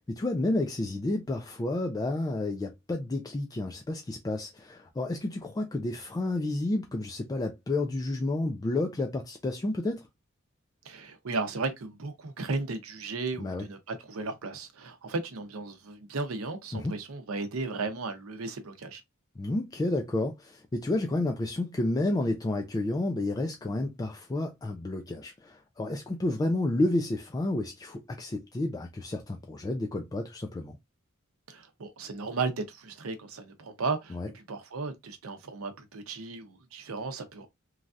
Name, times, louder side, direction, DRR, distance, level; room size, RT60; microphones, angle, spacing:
voice 1, 0.1-10.0 13.4-13.6 16.7-17.0 19.4-30.8 34.1-34.3, left 2 dB, 20° left, 0.3 m, -30 dB
voice 2, 10.8-19.0 31.5-37.5, right 3 dB, 80° right, 0.7 m, -35 dB
3.2 x 2.3 x 2.5 m
head